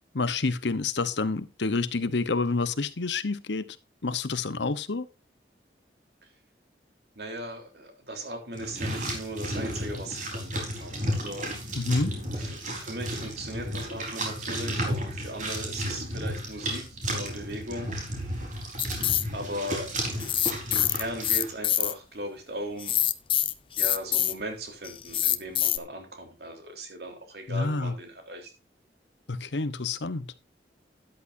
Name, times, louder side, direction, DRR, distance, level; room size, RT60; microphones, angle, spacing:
voice 1, 0.1-3.7 4.0-5.1 11.8-12.1 27.5-27.9 29.3-30.3, left 3 dB, 80° left, 1.0 m, -28 dB
voice 2, 7.2-11.5 12.4-17.9 19.3-19.9 20.7-23.0 23.8-28.5, right 1 dB, 60° right, 3.7 m, -38 dB
sound 1, 8.5-21.5, right 1 dB, 45° right, 4.2 m, -33 dB
sound 2, 18.8-19.3 20.2-21.9 22.8-24.4 24.8-25.8, left 11 dB, 30° left, 0.6 m, -25 dB
13.0 x 11.0 x 2.7 m
head